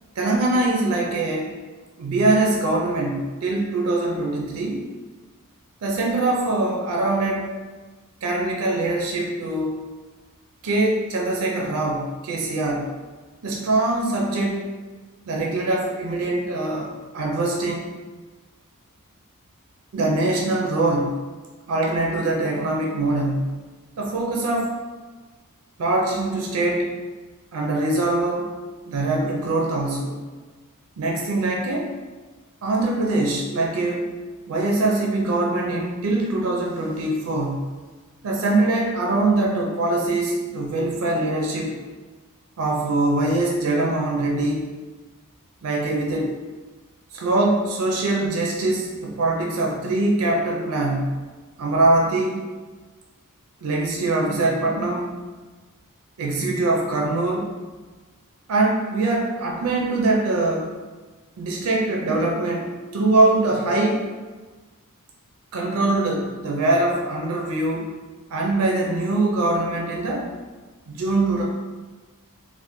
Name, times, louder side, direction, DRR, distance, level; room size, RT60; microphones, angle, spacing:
voice 1, 0.2-1.5 2.0-4.9 5.8-7.6 8.2-9.8 10.6-12.9 13.4-14.7 15.3-17.9 19.9-21.2 21.7-23.6 24.0-24.7 25.8-27.0 27.5-28.6 28.9-30.2 31.0-31.9 32.6-34.1 34.5-37.7 38.2-41.8 42.6-44.7 45.6-46.4 47.1-51.3 51.6-52.5 53.6-55.3 56.2-57.5 58.5-60.7 61.4-64.1 65.5-68.0 68.3-70.3 70.9-71.4, right 2 dB, 70° right, -1 dB, 0.4 m, -23 dB
3.2 x 2.1 x 2.9 m, 1.3 s
head